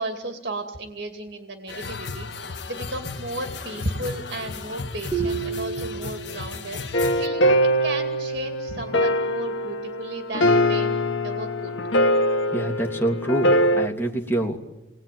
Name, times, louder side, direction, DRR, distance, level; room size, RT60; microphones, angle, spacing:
voice 1, 0.0-2.3 2.7-7.5 7.8-11.8, right 1 dB, 55° right, 5 dB, 2.5 m, -34 dB
sound 1, 1.7-7.3, left 4 dB, 65° left, 1.5 m, -35 dB
sound 2, 5.1-6.8, right 6 dB, 25° right, 2.8 m, -30 dB
sound 3, 6.9-13.9, equal, 90° left, 1.7 m, -22 dB
voice 2, 12.3-14.6, right 1 dB, 10° left, 1 dB, 3.0 m, -26 dB
28.0 x 21.5 x 9.3 m, 1.0 s
head